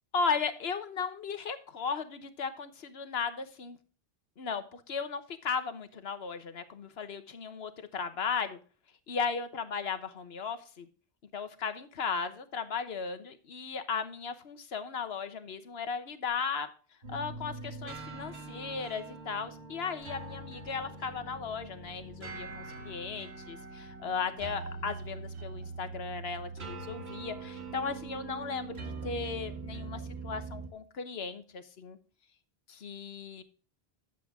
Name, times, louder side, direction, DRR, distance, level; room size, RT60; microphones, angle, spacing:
voice 1, 0.1-3.8 4.4-8.6 9.1-10.9 11.3-16.7 17.1-32.0 32.7-33.4, left 5 dB, 75° left, 11 dB, 1.3 m, -36 dB
sound 1, 17.0-30.7, right 3 dB, 85° right, 2.3 m, -43 dB
10.5 x 7.6 x 3.6 m, 0.38 s
omnidirectional pair, 1.0 m